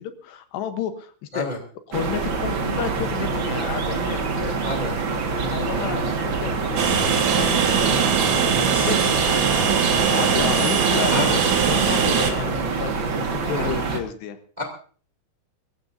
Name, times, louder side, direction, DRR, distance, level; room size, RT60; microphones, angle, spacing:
voice 1, 0.0-1.5 1.9-4.6 5.4-6.9 7.3-7.8 8.5-9.0 10.1-14.4, left 9 dB, 75° left, 9 dB, 3.0 m, -31 dB
sound 1, 1.9-14.0, right 4 dB, 75° right, 1.1 m, -26 dB
voice 2, 4.6-4.9 5.7-5.9 7.9-8.1 8.5-8.9 9.3-9.4 11.1-11.4 13.6-13.7 14.6-14.7, left 1 dB, 15° right, 2 dB, 1.6 m, -29 dB
Train, 6.8-12.3, right 7 dB, 55° right, 2.1 m, -21 dB
23.5 x 15.5 x 2.7 m, 0.42 s
omnidirectional pair, 5.2 m